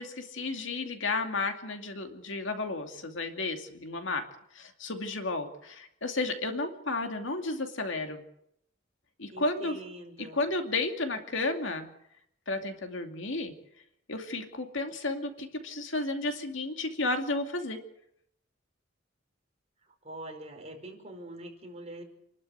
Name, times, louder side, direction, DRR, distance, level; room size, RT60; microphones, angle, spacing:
voice 1, 0.0-4.2 4.5-8.2 9.2-9.8 10.2-11.9 12.5-13.5 14.1-17.8, left 2 dB, 70° left, 5 dB, 2.5 m, -32 dB
voice 2, 9.3-10.4 19.8-22.0, right 1 dB, 35° right, 2 dB, 4.8 m, -44 dB
28.0 x 12.5 x 8.1 m, 0.77 s
head